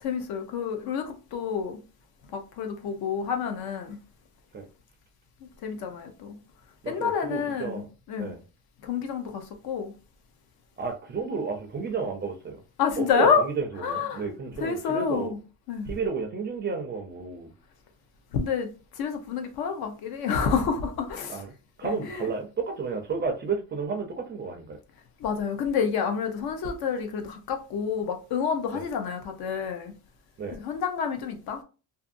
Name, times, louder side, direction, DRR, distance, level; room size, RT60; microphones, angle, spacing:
voice 1, 0.0-1.8 2.3-4.0 5.6-6.4 6.9-7.8 8.1-8.3 8.8-9.9 12.8-13.4 13.8-14.2 14.6-15.4 15.7-15.9 18.3-21.4 21.8-22.3 25.2-30.0 30.5-31.6, left 6 dB, 65° left, 0.7 m, -28 dB
voice 2, 6.8-7.9 8.2-8.4 10.8-12.6 13.0-15.3 15.9-17.5 21.3-21.5 21.8-24.8 28.7-28.8 30.4-30.6, right 5 dB, 25° right, 0.4 m, -32 dB
2.6 x 2.5 x 2.5 m
cardioid pair, 145°, 40 cm